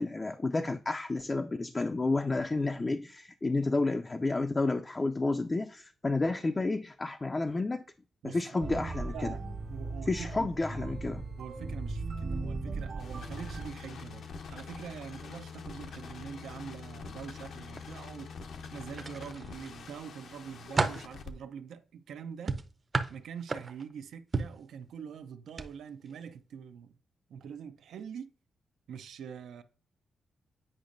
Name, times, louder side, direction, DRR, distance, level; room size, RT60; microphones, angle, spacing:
voice 1, 0.0-7.8 8.2-9.3 10.1-11.2, left 3 dB, 25° left, 0.4 m, -31 dB
sound 1, 8.6-13.7, right 3 dB, 65° right, 1.4 m, -37 dB
voice 2, 9.1-10.9 11.4-18.3 18.7-22.6 23.1-26.9 27.3-28.3 28.9-29.6, right 7 dB, 85° right, 0.5 m, -44 dB
sound 2, 13.0-21.3, left 5 dB, 75° left, 0.7 m, -45 dB
sound 3, 18.9-19.7 20.2-21.1 22.5-23.9 24.3-24.6 25.5-25.7 26.1-26.2, right 4 dB, 35° right, 0.6 m, -32 dB
8.7 x 5.1 x 2.6 m
cardioid pair, 95°, 0 cm